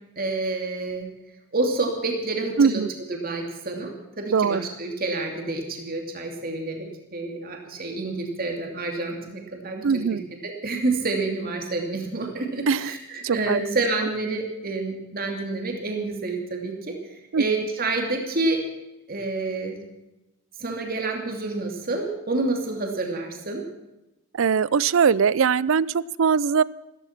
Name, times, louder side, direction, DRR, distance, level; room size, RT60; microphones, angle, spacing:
voice 1, 0.2-1.1 1.5-2.8 3.1-18.6 19.1-19.8 20.6-23.6, right 3 dB, 40° right, 2 dB, 2.7 m, -28 dB
voice 2, 2.6-2.9 4.3-4.6 9.8-10.2 12.7-12.9 13.2-13.6 17.3-17.4 24.4-26.6, right 6 dB, 60° right, 21 dB, 0.4 m, -21 dB
15.0 x 15.0 x 5.9 m, 0.95 s
head